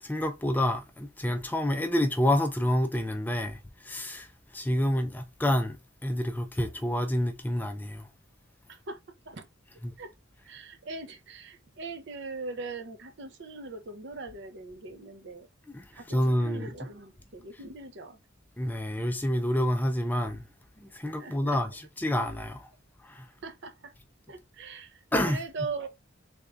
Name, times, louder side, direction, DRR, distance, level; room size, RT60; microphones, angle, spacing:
voice 1, 0.0-5.8 6.0-8.1 9.8-9.9 15.7-16.7 18.6-20.5 20.8-22.7 23.0-23.3 25.1-25.4, left 1 dB, 10° left, 0.4 m, -28 dB
voice 2, 8.7-9.5 10.0-10.1 10.4-15.5 15.9-18.2 21.2-21.6 23.4-23.9 24.3-25.9, right 3 dB, 60° right, 0.6 m, -41 dB
3.5 x 2.6 x 3.3 m
head